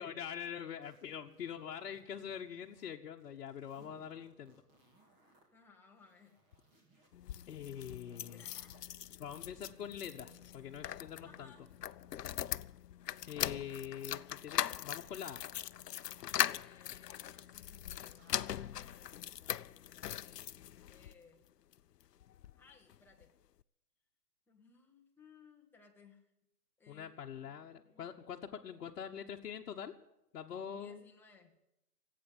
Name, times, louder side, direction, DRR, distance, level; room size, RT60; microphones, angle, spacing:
voice 1, 0.0-4.5 7.5-8.4 9.2-11.5 13.3-15.4 26.9-29.9 30.3-31.1, left 8 dB, 60° left, -1 dB, 1.2 m, -44 dB
sound 1, 0.8-2.9 3.2-5.5 5.9-7.1 7.5-8.8 9.3-12.5 13.0-14.2 14.7-15.3 15.8-16.4 17.0-17.5 18.0-18.5, right 1 dB, 20° right, 3.1 m, -68 dB
voice 2, 5.5-6.4 8.3-8.8 10.5-10.6 11.2-11.7 16.3-21.4 22.5-23.3 24.5-26.3 26.8-28.1 30.7-31.5, left 5 dB, 5° left, 0 dB, 1.1 m, -63 dB
sound 2, 7.1-21.1 21.7-22.6 22.9-23.0 23.2-23.3, left 11 dB, 85° left, 0.6 m, -41 dB
16.5 x 8.6 x 9.7 m, 0.88 s
hypercardioid pair, 150°, 47 cm